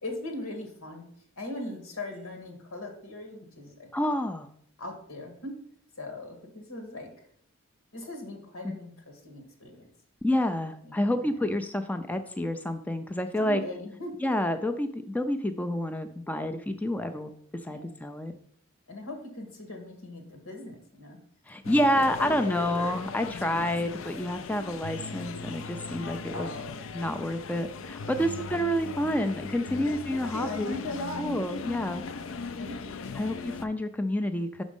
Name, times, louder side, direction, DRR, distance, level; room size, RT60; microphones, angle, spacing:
voice 1, 0.0-1.0 1.4-3.9 4.8-5.6 6.0-7.1 7.9-9.9 10.8-11.5 13.4-14.2 17.7-17.9 18.9-21.2 21.6-23.0 23.3-23.7 26.3-26.8 27.4-27.7 28.2-28.4 29.8-31.3 31.6-33.0, left 1 dB, 90° left, 4 dB, 1.9 m, -40 dB
voice 2, 3.9-4.5 8.6-8.7 10.2-13.6 14.2-17.3 17.6-18.3 21.5-26.5 26.9-30.7 31.2-32.0 33.2-34.6, left 1 dB, 5° left, 8 dB, 0.3 m, -29 dB
sound 1, 21.6-33.7, left 4 dB, 65° left, 0.5 m, -39 dB
6.2 x 5.0 x 5.3 m, 0.66 s
head